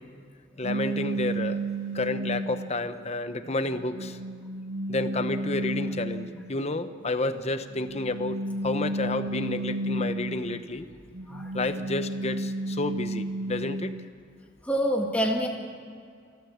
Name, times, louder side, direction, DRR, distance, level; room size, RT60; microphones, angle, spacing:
voice 1, 0.6-1.6 1.9-4.2 4.9-10.9 11.5-13.9, left 2 dB, 35° left, 10 dB, 0.9 m, -30 dB
sound 1, 0.6-2.8 3.5-6.6 7.7-10.7 11.1-14.1, right 1 dB, 85° right, 1.1 m, -32 dB
voice 2, 14.6-15.5, equal, 5° left, 0 dB, 1.9 m, -26 dB
29.0 x 13.0 x 7.3 m, 2.3 s
head